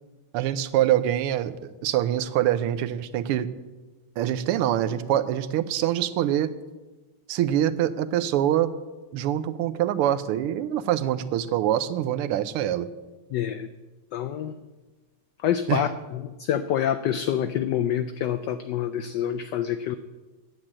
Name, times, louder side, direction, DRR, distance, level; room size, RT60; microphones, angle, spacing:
voice 1, 0.3-3.5 4.2-6.5 7.3-8.7 9.1-12.9 15.7-15.8, right 11 dB, 85° right, 14 dB, 1.6 m, -24 dB
voice 2, 13.3-13.7 14.1-14.5 15.4-20.0, left 10 dB, 85° left, 9 dB, 0.9 m, -27 dB
8.7 x 8.0 x 8.8 m, 1.2 s
omnidirectional pair, 2.4 m